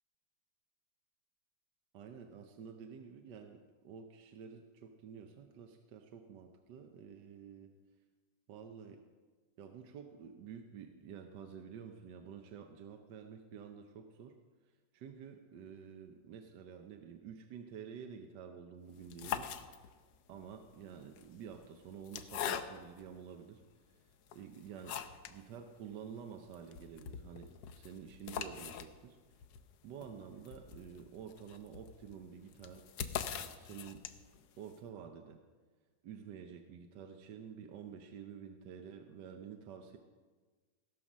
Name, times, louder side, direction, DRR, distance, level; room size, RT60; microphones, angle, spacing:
voice 1, 1.9-7.7 8.5-9.0 9.6-14.4 14.9-19.5 20.3-23.6 23.9-24.0 24.3-25.0 25.3-27.5 27.8-29.2 29.8-32.8 33.2-34.1 34.6-35.4 36.0-40.0, right 7 dB, 75° right, 5 dB, 1.3 m, -50 dB
sound 1, 18.9-20.2 21.0-23.1 23.7-23.8 24.3-25.4 25.7-25.8 26.1-26.2 26.5-34.4, left 9 dB, 80° left, 1.3 m, -43 dB
17.0 x 5.8 x 6.2 m, 1.4 s
omnidirectional pair, 2.0 m